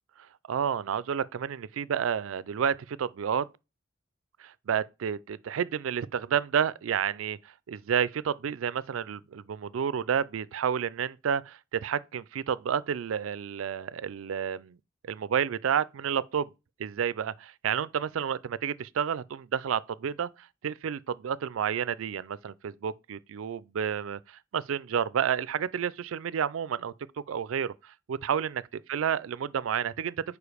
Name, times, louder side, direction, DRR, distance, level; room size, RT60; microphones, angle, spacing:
voice 1, 0.5-3.5 4.4-7.4 7.7-14.8 15.1-16.5 16.8-20.3 20.6-26.9 27.3-28.6 28.9-30.1, right 8 dB, 90° right, 0.4 m, -30 dB
5.0 x 4.8 x 4.8 m
head